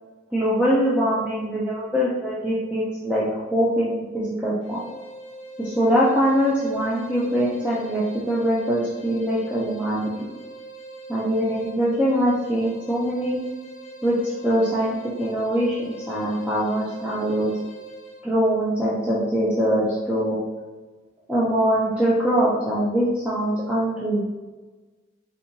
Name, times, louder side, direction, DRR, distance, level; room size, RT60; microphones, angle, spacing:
voice 1, 0.3-4.8 5.6-10.1 11.1-13.4 14.0-17.5 18.2-20.4 21.3-24.2, equal, 5° right, -8 dB, 0.5 m, -23 dB
sound 1, 4.6-18.3, right 2 dB, 55° left, 1.0 m, -42 dB
4.1 x 2.7 x 3.9 m, 1.2 s
head